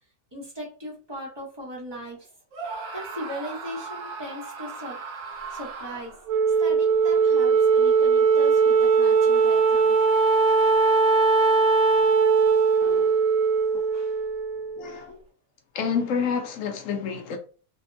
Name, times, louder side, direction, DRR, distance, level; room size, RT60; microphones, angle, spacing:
voice 1, 0.3-2.3 2.6-5.0 5.5-10.0 12.0-12.3 13.9-14.2 14.9-15.2, equal, 25° right, 0.7 m, -39 dB
Screaming, 2.5-6.3, right 4 dB, 60° right, 0.9 m, -37 dB
Wind instrument woodwind instrument, 6.3-14.9, right 5 dB, 85° right, 1.1 m, -20 dB
voice 2, 12.8-13.2 13.7-13.9 14.8-15.2 15.7-17.4, left 6 dB, 65° left, 0.8 m, -29 dB
3.4 x 2.0 x 2.6 m
omnidirectional pair, 1.6 m